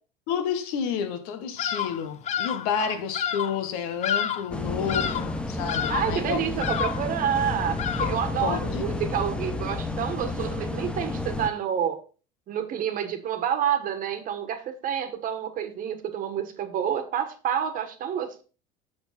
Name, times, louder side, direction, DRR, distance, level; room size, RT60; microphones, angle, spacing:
voice 1, 0.3-6.4 8.4-9.0, left 7 dB, 80° left, 1.4 m, -30 dB
Bird vocalization bird call bird song, 1.6-2.7 3.1-3.6 4.0-4.5 4.9-5.3 5.7-6.2 6.6-7.1 7.8-8.3, left 9 dB, 35° left, 0.7 m, -29 dB
sound 1, 4.5-11.5, left 2 dB, 5° left, 0.8 m, -31 dB
voice 2, 5.9-12.0 12.5-18.4, right 9 dB, 45° right, 1.4 m, -28 dB
6.8 x 6.5 x 4.3 m
supercardioid pair, 125°, 20 cm